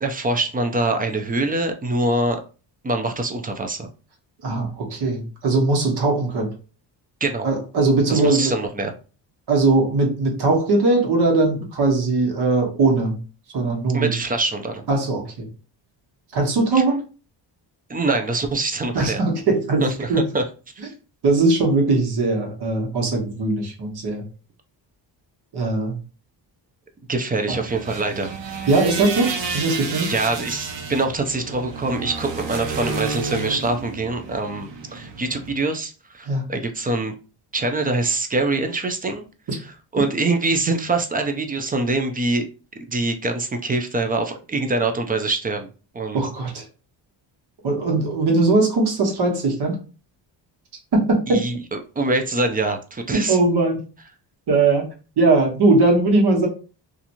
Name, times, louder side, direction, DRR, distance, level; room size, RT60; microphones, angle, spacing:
voice 1, 0.0-2.4 2.8-3.9 7.2-7.5 8.1-8.9 13.9-14.9 16.7-16.8 17.9-19.2 19.8-20.1 20.3-20.4 27.1-28.4 30.0-37.1 37.5-39.2 39.9-42.5 42.8-45.7 45.9-46.2 51.3-51.5 52.0-53.4, right 2 dB, 20° right, 5 dB, 0.4 m, -24 dB
voice 2, 4.4-6.5 7.4-8.6 9.5-13.2 13.5-14.1 14.9-15.4 16.3-17.0 18.9-20.2 20.8-20.9 21.2-24.2 25.5-26.0 27.5-27.6 28.7-30.1 36.2-36.4 39.5-39.6 46.1-46.6 47.6-49.8 50.9-51.4 53.1-53.8 54.5-54.9 55.2-56.5, right 3 dB, 60° right, 1 dB, 1.1 m, -20 dB
sound 1, 27.5-35.5, right 4 dB, 80° right, 0.9 m, -31 dB
2.8 x 2.5 x 2.6 m, 0.34 s
cardioid pair, 115°, 45 cm